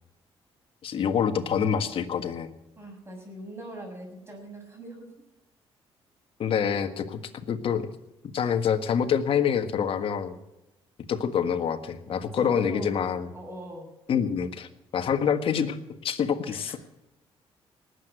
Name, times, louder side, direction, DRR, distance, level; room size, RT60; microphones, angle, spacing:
voice 1, 0.8-2.5 6.4-7.9 8.3-10.4 11.1-13.3 14.1-14.7 14.9-15.8 16.0-16.8, left 7 dB, 60° left, 8 dB, 1.6 m, -26 dB
voice 2, 2.8-5.1 12.1-13.9 16.5-16.8, right 1 dB, 25° right, 2 dB, 6.9 m, -41 dB
19.5 x 8.3 x 7.9 m, 0.97 s
cardioid pair, 100°, 11 cm